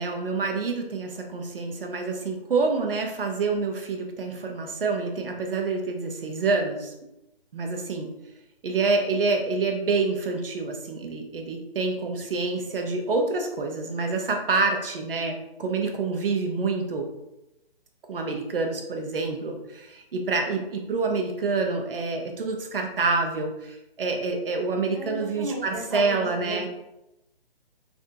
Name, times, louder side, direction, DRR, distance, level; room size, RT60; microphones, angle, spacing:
voice 1, 0.0-6.9 7.5-8.1 8.6-17.1 18.1-26.7, right 3 dB, 65° right, 3 dB, 0.7 m, -27 dB
voice 2, 24.9-26.7, right 1 dB, 5° right, -19 dB, 0.5 m, -35 dB
3.5 x 2.6 x 2.6 m, 0.89 s
hypercardioid pair, 165°, 30 cm